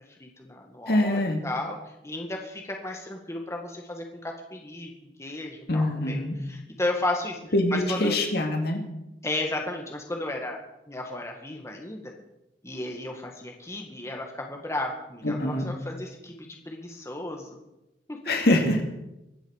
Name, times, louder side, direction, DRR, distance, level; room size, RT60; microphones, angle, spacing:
voice 1, 0.0-1.8 2.0-4.9 5.2-7.4 7.7-8.2 9.2-10.6 10.9-12.1 12.6-17.6 18.1-18.2, left 2 dB, 15° left, 1 dB, 1.9 m, -34 dB
voice 2, 0.9-1.4 5.7-6.4 7.5-8.8 15.2-15.6 18.3-18.8, left 1 dB, 60° left, 3 dB, 2.6 m, -24 dB
24.0 x 8.1 x 6.5 m, 0.92 s
head